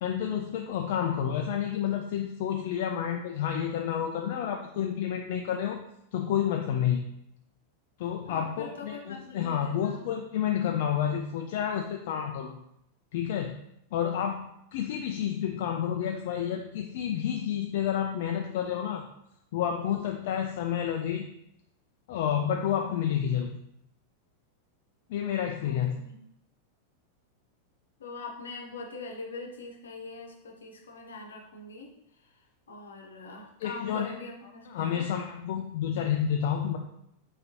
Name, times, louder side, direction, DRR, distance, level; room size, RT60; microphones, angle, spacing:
voice 1, 0.0-5.8 6.1-7.1 8.0-12.5 13.1-13.5 13.9-14.4 14.7-19.1 19.5-21.3 22.1-23.5 25.1-26.0 33.6-34.1 34.7-36.8, left 9 dB, 50° left, 3 dB, 0.4 m, -30 dB
voice 2, 8.3-10.0 25.6-26.2 28.0-35.1, left 3 dB, 70° left, 1 dB, 0.8 m, -43 dB
5.1 x 3.2 x 2.8 m, 0.78 s
figure-of-eight pair, 90°, 0 cm